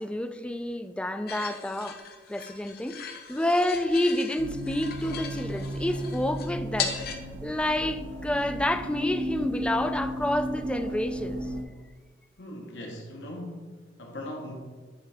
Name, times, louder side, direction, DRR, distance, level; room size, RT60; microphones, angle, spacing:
voice 1, 0.0-2.0 2.3-6.9 7.4-11.5, left 1 dB, 5° left, 8 dB, 0.3 m, -29 dB
sound 1, 1.3-7.1, left 6 dB, 60° left, 0.7 m, -38 dB
sound 2, 4.4-11.6, equal, 80° right, 0.8 m, -35 dB
voice 2, 12.4-14.5, left 1 dB, 80° left, 0 dB, 1.1 m, -39 dB
10.5 x 3.8 x 3.4 m, 1.4 s
head